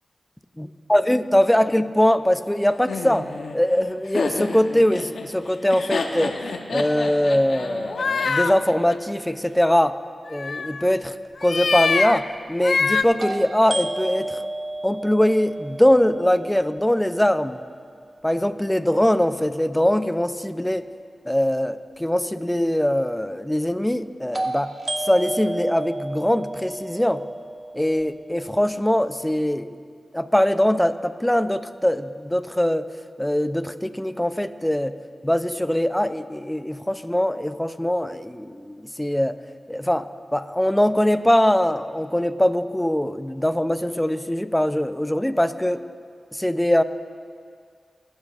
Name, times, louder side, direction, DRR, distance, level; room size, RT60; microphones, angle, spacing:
voice 1, 0.6-6.4 6.7-10.0 10.3-11.1 11.4-14.4 14.8-17.6 18.2-20.9 21.3-24.7 25.0-27.2 27.7-29.8 30.1-32.9 33.2-35.0 35.2-39.4 39.7-45.8 46.3-46.8, left 1 dB, 10° left, 11 dB, 0.5 m, -22 dB
Laughter, 2.9-9.0, left 4 dB, 90° left, 0.9 m, -30 dB
sound 1, 7.9-8.5 10.3-10.9 11.4-12.2 12.6-13.0, left 4 dB, 70° left, 0.3 m, -23 dB
sound 2, 11.2-11.3 13.2-17.1 24.3-28.4, right 2 dB, 35° right, 1.1 m, -32 dB
21.0 x 10.5 x 2.5 m, 2.1 s
cardioid pair, 60°, 0 cm